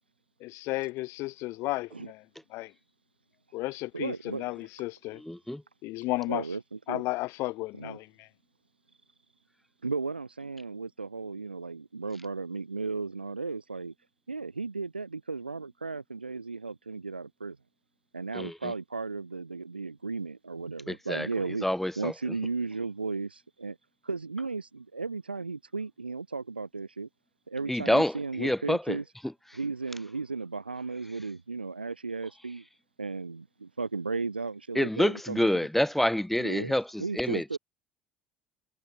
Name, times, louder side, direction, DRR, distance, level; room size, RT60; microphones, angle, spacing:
voice 1, 0.4-2.2 2.5-2.7 3.5-5.2 5.8-6.5 6.9-8.3, left 20 dB, 55° left, 2.3 m, -33 dB
voice 2, 3.9-4.5 6.3-7.0 7.8-8.0 9.8-13.9 14.3-17.6 18.1-21.7 22.0-23.8 24.0-27.1 27.5-29.0 29.5-32.6 33.0-35.7 36.4-36.7 37.0-37.6, right 4 dB, 85° right, 4.3 m, -35 dB
voice 3, 5.3-5.6 18.3-18.7 20.9-21.3 21.6-22.1 27.7-28.1 28.4-29.0 34.7-37.6, left 1 dB, 5° left, 1.3 m, -27 dB
figure-of-eight pair, 65°, 5 cm